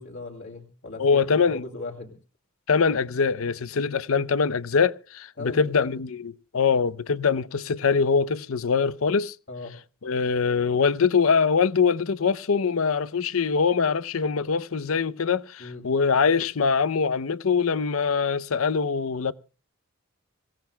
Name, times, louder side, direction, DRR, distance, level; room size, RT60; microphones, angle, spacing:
voice 1, 0.0-2.1 5.4-5.9 9.5-9.8 15.6-15.9, left 2 dB, 60° left, 2.8 m, -38 dB
voice 2, 1.0-1.6 2.7-9.3 10.0-19.3, left 5 dB, 80° left, 0.6 m, -23 dB
25.5 x 17.0 x 2.2 m
head